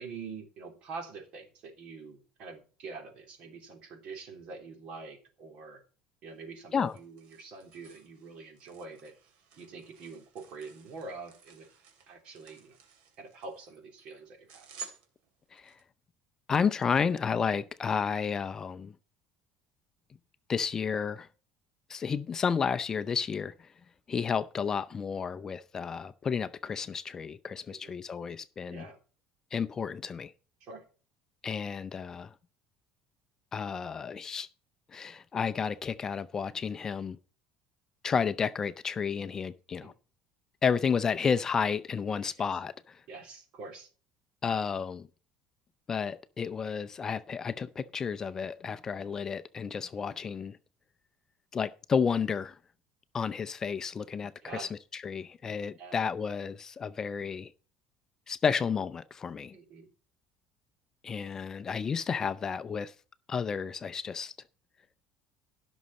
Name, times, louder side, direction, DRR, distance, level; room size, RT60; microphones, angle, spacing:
voice 1, 0.0-5.8 6.2-9.1 9.6-11.7 12.1-12.8 13.2-14.7 27.7-27.9 28.7-29.0 30.6-30.8 39.7-39.9 42.2-42.3 43.1-43.9 54.4-54.7 55.8-56.0 59.5-59.9, right 4 dB, 50° right, 3.2 m, -45 dB
sound 1, 6.3-15.8, right 6 dB, 65° right, 2.8 m, -53 dB
voice 2, 16.5-18.9 20.5-21.3 21.9-23.7 24.1-28.9 29.5-30.3 31.4-32.3 33.5-34.5 34.9-37.2 38.0-39.9 40.6-43.0 44.4-45.1 45.9-50.6 51.5-52.6 53.1-57.5 58.3-59.6 61.0-62.9 63.3-64.3, left 6 dB, 25° left, 0.5 m, -31 dB
16.5 x 6.3 x 4.1 m
cardioid pair, 145°, 2 cm